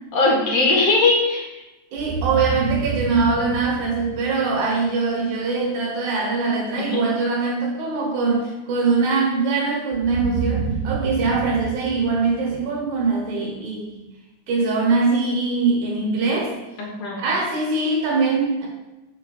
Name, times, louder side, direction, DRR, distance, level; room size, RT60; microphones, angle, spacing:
voice 1, 0.1-1.5 6.8-7.0 16.8-17.2, left 3 dB, 60° left, -2 dB, 2.5 m, -19 dB
voice 2, 1.9-14.0 14.5-16.5 17.2-18.7, right 4 dB, 90° right, -2 dB, 2.7 m, -22 dB
sound 1, 2.0-4.9 9.9-13.1, right 4 dB, 70° right, 1.7 m, -29 dB
7.0 x 5.8 x 3.3 m, 1.0 s
omnidirectional pair, 3.3 m